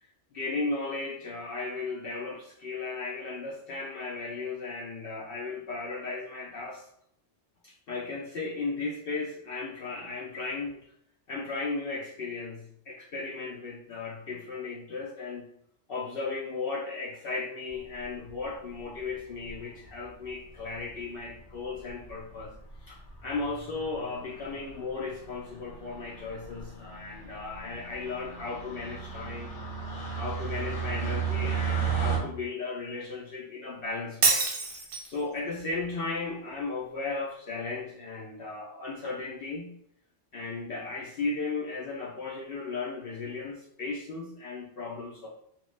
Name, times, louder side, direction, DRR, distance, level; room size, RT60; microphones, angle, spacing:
voice 1, 0.3-6.9 7.6-10.8 11.3-15.5 15.9-22.5 22.8-29.5 30.1-34.5 35.0-39.8 40.3-45.3, left 3 dB, 60° left, -4 dB, 0.7 m, -35 dB
sound 1, 18.0-18.5 19.5-19.9 20.7-20.8 21.0-21.1 21.4-21.5 21.8-22.1 22.5-22.8 23.1-32.2, right 7 dB, 80° left, 1.1 m, -35 dB
Shatter, 34.2-35.2, right 4 dB, 55° right, 0.7 m, -26 dB
2.9 x 2.3 x 3.1 m, 0.69 s
omnidirectional pair, 1.2 m